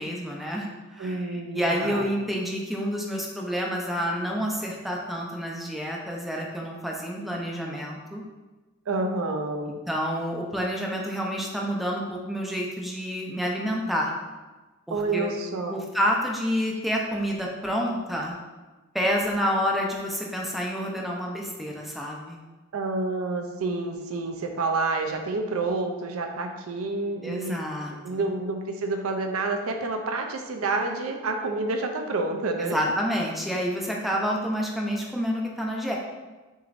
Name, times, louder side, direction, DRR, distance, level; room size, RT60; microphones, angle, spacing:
voice 1, 0.0-8.2 9.9-14.1 14.9-15.3 15.7-18.3 18.9-22.4 27.2-28.3 32.6-35.9, equal, ahead, -2 dB, 0.5 m, -28 dB
voice 2, 1.0-2.0 8.9-9.8 14.9-15.8 22.7-27.6 28.0-32.8, right 3 dB, 80° right, 4 dB, 0.5 m, -29 dB
6.3 x 3.0 x 2.5 m, 1.2 s
head